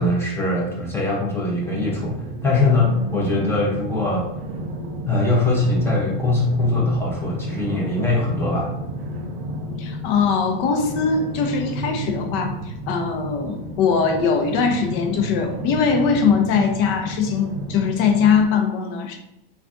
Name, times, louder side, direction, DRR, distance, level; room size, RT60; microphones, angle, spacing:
voice 1, 0.0-4.3 5.1-8.7, left 2 dB, 10° left, -3 dB, 0.7 m, -22 dB
sound 1, 1.6-18.4, right 1 dB, 80° right, 0.6 m, -31 dB
voice 2, 9.8-12.6 12.9-19.2, left 5 dB, 45° left, 4 dB, 0.6 m, -21 dB
3.2 x 2.3 x 2.5 m, 0.83 s
supercardioid pair, 125°, 29 cm